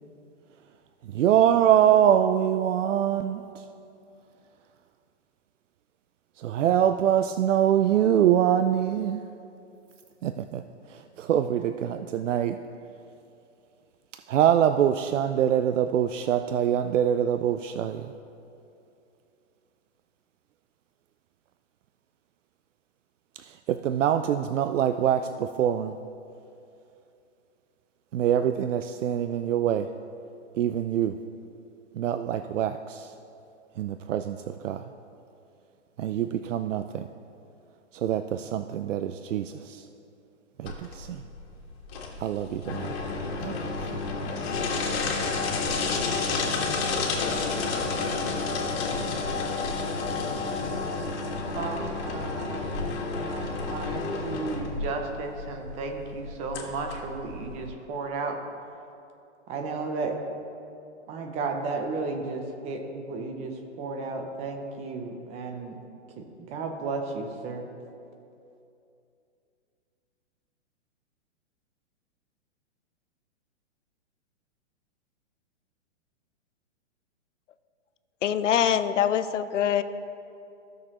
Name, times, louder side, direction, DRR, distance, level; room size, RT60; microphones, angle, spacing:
voice 1, 1.1-3.6 6.4-9.2 10.2-10.6 10.9-12.6 14.3-18.1 23.4-25.9 28.1-29.9 30.6-31.1 32.0-33.1 33.8-34.8 36.0-37.1 37.9-39.9 40.6-41.2 42.2-43.0 43.4-43.8, right 10 dB, 85° right, 9 dB, 0.5 m, -24 dB
sound 1, 40.7-57.7, left 4 dB, 55° left, 1.8 m, -30 dB
voice 2, 51.5-58.4 59.5-60.1 61.1-63.5 63.8-65.8 66.5-67.6, right 3 dB, 20° right, 4 dB, 0.6 m, -34 dB
voice 3, 78.2-79.8, left 9 dB, 75° left, 12 dB, 0.6 m, -24 dB
15.0 x 6.5 x 3.0 m, 2.6 s
hypercardioid pair, 145°, 36 cm